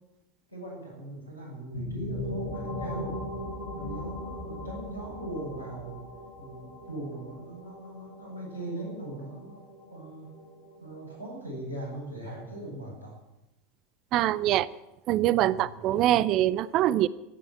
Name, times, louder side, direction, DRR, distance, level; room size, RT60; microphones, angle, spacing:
voice 1, 0.5-3.2 3.7-6.0 6.4-9.6 9.9-10.3 10.8-13.1 15.3-15.7, right 1 dB, 90° left, -2 dB, 7.6 m, -40 dB
sound 1, 1.7-11.3, left 1 dB, 70° left, 6.0 m, -39 dB
voice 2, 14.1-14.7 15.1-17.1, right 13 dB, 45° right, 19 dB, 0.6 m, -24 dB
15.0 x 9.9 x 9.0 m, 0.93 s
figure-of-eight pair, 80°, 0 cm